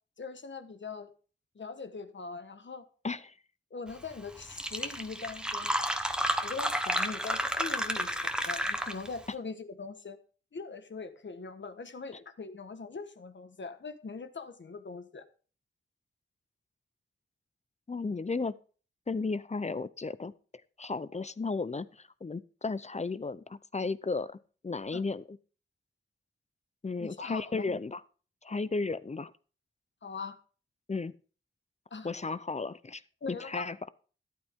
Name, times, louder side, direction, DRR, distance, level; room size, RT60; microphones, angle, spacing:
voice 1, 0.2-1.1 1.5-2.8 3.7-5.7 6.4-10.2 10.5-15.2 24.9-25.0 27.0-27.6 30.0-30.4 31.9-32.1 33.2-33.7, left 4 dB, 60° left, 10 dB, 1.4 m, -41 dB
voice 2, 3.0-3.3 17.9-18.6 19.1-20.3 20.8-24.4 24.6-25.4 26.8-28.0 28.4-29.3 30.9-31.1 32.0-33.0 33.3-33.8, left 4 dB, 35° left, 16 dB, 0.7 m, -34 dB
Fill (with liquid), 4.1-4.2 4.4-9.2, equal, 5° right, 1.3 m, -31 dB
13.5 x 12.0 x 3.7 m, 0.38 s
wide cardioid pair, 95°, 21 cm